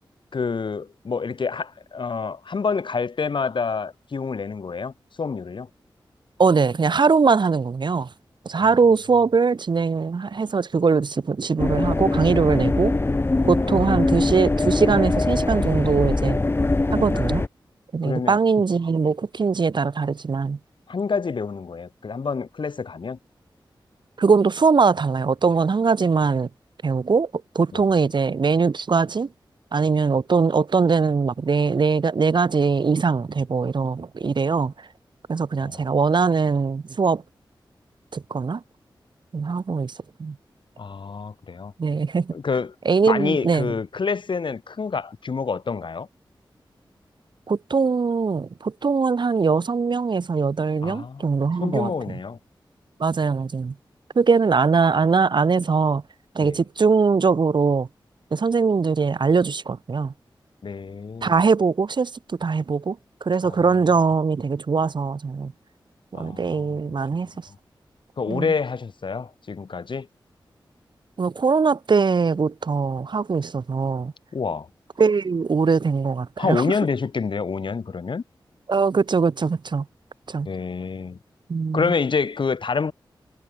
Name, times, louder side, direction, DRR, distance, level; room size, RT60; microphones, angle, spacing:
voice 1, 0.3-5.7 8.6-8.7 13.6-14.1 18.0-18.4 20.9-23.2 27.7-27.9 35.6-35.8 40.8-41.7 42.3-42.8 43.1-46.1 50.8-52.4 56.4-56.6 60.6-61.4 63.4-63.7 66.1-66.8 68.2-70.1 74.3-74.7 76.4-78.2 80.4-81.2 81.7-82.9, left 5 dB, 70° left, 6.9 m, -27 dB
voice 2, 6.4-8.1 8.5-12.9 13.4-16.4 16.9-17.4 17.9-20.6 24.2-26.5 26.8-27.3 27.6-29.3 29.7-34.7 35.3-37.2 38.1-38.6 39.3-39.9 40.2-40.4 41.8-42.3 42.9-43.7 47.5-51.9 53.0-53.7 54.2-56.0 56.4-57.9 58.3-60.1 61.2-65.5 66.1-67.3 68.3-68.5 71.2-74.1 75.0-76.6 78.7-79.9 80.3-80.5 81.5-81.9, right 5 dB, 65° right, 1.9 m, -21 dB
sound 1, 11.6-17.5, left 2 dB, 30° left, 1.2 m, -22 dB
wide cardioid pair, 75°, 9 cm